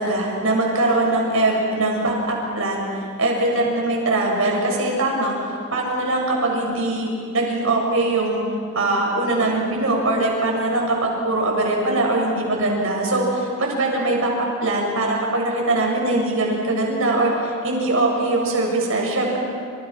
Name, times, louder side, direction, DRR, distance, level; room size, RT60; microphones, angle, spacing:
voice 1, 0.0-2.8 3.2-5.4 5.7-8.4 8.7-19.4, right 2 dB, 70° right, -1 dB, 7.4 m, -21 dB
29.0 x 28.5 x 6.1 m, 2.4 s
head